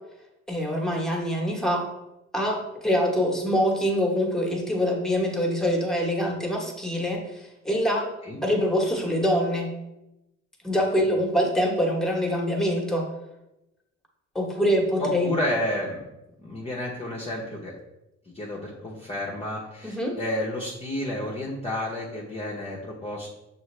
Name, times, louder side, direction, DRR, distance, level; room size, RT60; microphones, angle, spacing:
voice 1, 0.5-1.8 2.3-8.1 8.4-9.7 10.6-13.1 14.3-15.3 19.8-20.2, equal, ahead, 0 dB, 1.1 m, -24 dB
voice 2, 15.0-16.0 16.4-17.7 18.3-23.3, left 1 dB, 20° left, -4 dB, 0.8 m, -31 dB
6.1 x 2.5 x 3.2 m, 0.93 s
cardioid pair, 90°, 30 cm